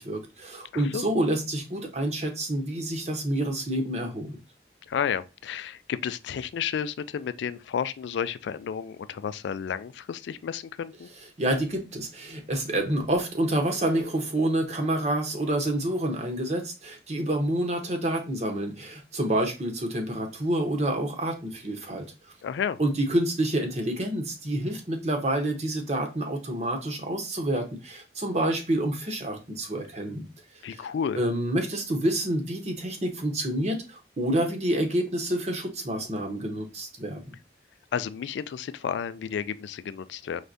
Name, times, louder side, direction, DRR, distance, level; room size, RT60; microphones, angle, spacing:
voice 1, 0.0-4.4 11.4-22.1 22.8-30.2 30.7-30.9 31.1-37.2, right 1 dB, 40° right, 0.9 m, -28 dB
voice 2, 0.7-1.1 4.9-11.1 22.4-22.8 30.6-31.2 37.9-40.4, left 7 dB, 85° left, 0.3 m, -32 dB
sound 1, 13.6-14.5, right 3 dB, 65° right, 0.8 m, -43 dB
4.7 x 3.4 x 2.6 m
head